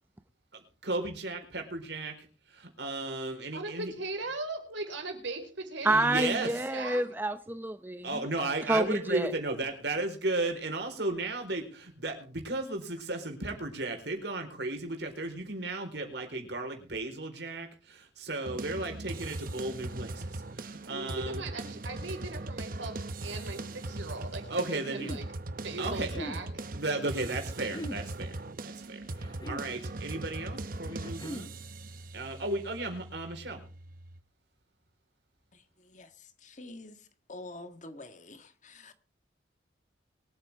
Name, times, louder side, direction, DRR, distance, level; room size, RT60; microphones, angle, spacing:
voice 1, 0.5-3.9 5.8-6.6 8.0-21.4 24.5-25.1 25.8-26.1 26.7-28.3 28.6-31.5 32.1-33.6, right 2 dB, 65° right, 4.3 m, -35 dB
voice 2, 3.5-7.0 20.8-25.2 25.6-26.7, right 2 dB, 90° right, 4.8 m, -39 dB
voice 3, 5.8-8.1 8.7-9.3, right 1 dB, 10° right, 0.7 m, -28 dB
sound 1, 18.5-34.2, right 2 dB, 50° right, 1.0 m, -40 dB
sound 2, 24.5-25.3 26.0-26.4 27.6-28.0 29.1-29.7 30.9-31.5, equal, 20° left, 1.1 m, -41 dB
voice 4, 35.5-38.9, left 2 dB, 40° left, 1.7 m, -48 dB
23.5 x 8.9 x 3.6 m
head